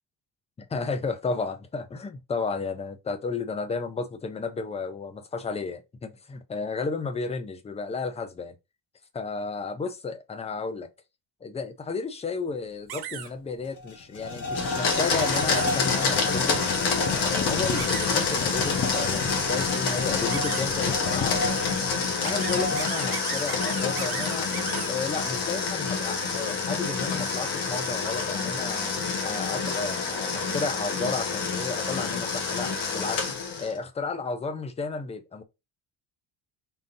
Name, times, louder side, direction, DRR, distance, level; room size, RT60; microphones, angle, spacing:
voice 1, 0.7-8.6 9.1-10.9 11.4-16.6 17.0-21.6 22.2-24.5 24.9-28.9 29.2-33.3 33.6-35.4, left 4 dB, 15° left, 0.3 m, -32 dB
sound 1, 12.9-13.3 15.3-15.7 17.8-18.1 20.3-20.7 22.2-24.9, right 10 dB, 60° right, 0.7 m, -36 dB
sound 2, 13.2-13.3 13.6-24.3, left 3 dB, 45° left, 0.9 m, -32 dB
Domestic sounds home sounds, 14.6-33.8, left 5 dB, 65° left, 1.2 m, -28 dB
3.7 x 2.6 x 3.8 m
cardioid pair, 170°, 43 cm